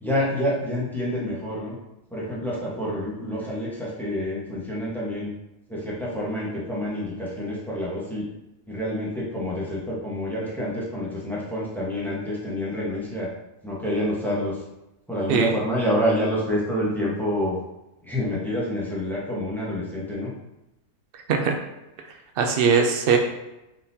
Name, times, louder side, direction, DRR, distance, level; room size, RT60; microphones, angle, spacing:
voice 1, 0.0-1.8 2.1-5.3 5.7-8.3 8.7-13.3 13.6-14.6 15.1-17.6 18.0-20.3, equal, ahead, -6 dB, 0.8 m, -27 dB
voice 2, 22.4-23.2, right 5 dB, 90° right, 4 dB, 0.5 m, -20 dB
4.2 x 3.8 x 2.7 m, 0.94 s
omnidirectional pair, 1.6 m